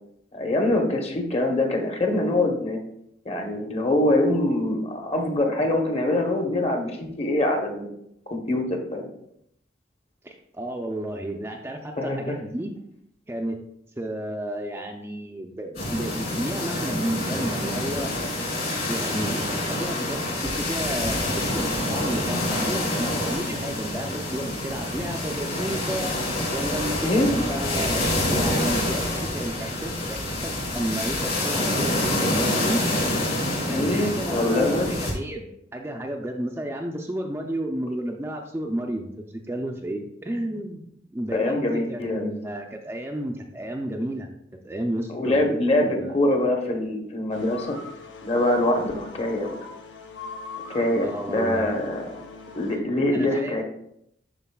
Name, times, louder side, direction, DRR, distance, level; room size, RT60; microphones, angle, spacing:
voice 1, 0.3-2.8 3.2-7.9 8.3-9.1 12.0-12.3 27.0-27.3 32.6-32.7 33.7-34.9 41.3-42.3 45.1-47.8 48.2-49.6 50.7-52.0 52.5-53.6, left 1 dB, 35° left, 2 dB, 1.0 m, -24 dB
voice 2, 10.2-12.7 13.3-13.6 14.0-18.1 18.9-26.1 26.5-32.8 33.7-40.8 41.1-44.3 44.6-46.2 51.0-51.7 53.1-53.6, right 1 dB, 15° right, 1 dB, 0.4 m, -32 dB
sound 1, 15.7-35.1, left 1 dB, 55° left, 2.5 m, -27 dB
sound 2, 47.3-52.8, left 4 dB, 85° left, 0.8 m, -41 dB
11.0 x 3.9 x 2.3 m, 0.75 s
head